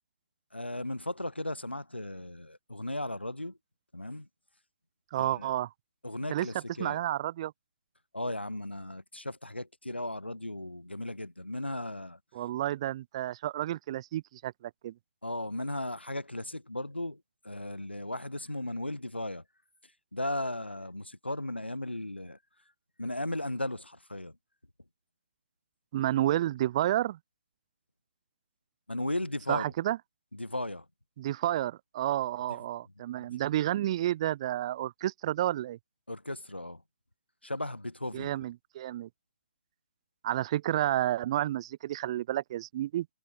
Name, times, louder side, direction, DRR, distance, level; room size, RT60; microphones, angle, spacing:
voice 1, 0.5-3.6 3.9-4.3 5.2-5.5 6.0-7.0 8.1-12.2 15.2-17.2 17.4-19.4 20.1-22.4 23.0-24.3 28.9-29.7 30.3-30.8 33.2-33.3 36.1-36.8 37.4-38.3, left 1 dB, 85° left, 2.4 m, -36 dB
voice 2, 5.1-5.7 6.3-7.5 12.3-14.9 25.9-27.2 29.5-30.0 31.2-35.8 38.1-39.1 40.2-43.1, right 13 dB, 30° right, 0.8 m, -30 dB
figure-of-eight pair, 135°, 6 cm